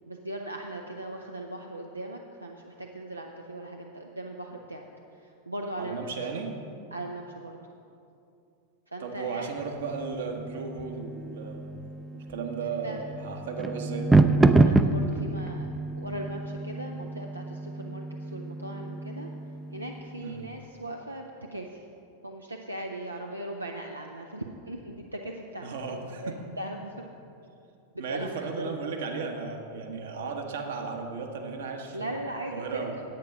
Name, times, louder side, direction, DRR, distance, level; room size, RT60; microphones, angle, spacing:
voice 1, 0.1-4.9 5.2-6.1 6.9-7.6 8.9-9.7 12.6-13.0 14.6-15.7 16.0-19.3 19.7-21.8 22.2-27.1 27.9-28.8 31.9-33.0, right 1 dB, 85° right, 2 dB, 0.6 m, -39 dB
voice 2, 5.8-6.5 9.0-11.8 12.1-14.3 20.2-20.5 25.6-26.4 28.0-32.1 32.5-32.9, right 5 dB, 60° right, 3 dB, 1.2 m, -35 dB
sound 1, 9.6-20.4, right 2 dB, 10° right, 0.4 m, -27 dB
9.4 x 8.5 x 5.8 m, 2.6 s
figure-of-eight pair, 90°, 0 cm